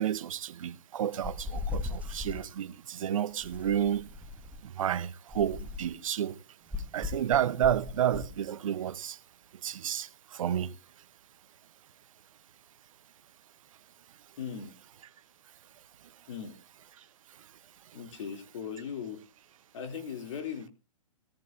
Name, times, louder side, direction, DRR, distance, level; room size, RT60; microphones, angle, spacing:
voice 1, 0.0-4.1 4.6-6.4 6.9-9.2 9.6-10.7, right 10 dB, 60° right, 0.8 m, -31 dB
sound 1, 1.2-2.5 3.4-4.7 5.3-6.0 6.7-8.3, left 4 dB, 10° right, 0.8 m, -38 dB
voice 2, 14.4-14.7 16.3-16.6 17.9-19.2 19.7-20.7, left 7 dB, 55° left, 2.7 m, -38 dB
17.0 x 13.5 x 2.5 m
hypercardioid pair, 135°, 19 cm